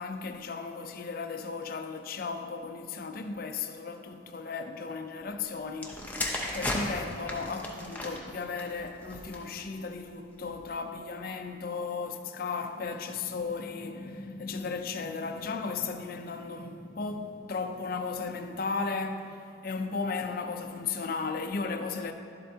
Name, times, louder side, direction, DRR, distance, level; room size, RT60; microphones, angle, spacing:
voice 1, 0.0-22.1, left 4 dB, 50° left, 0.4 m, -35 dB
sound 1, 5.7-9.6 10.4-10.6, left 1 dB, 10° left, 0.7 m, -35 dB
11.5 x 7.7 x 2.8 m
head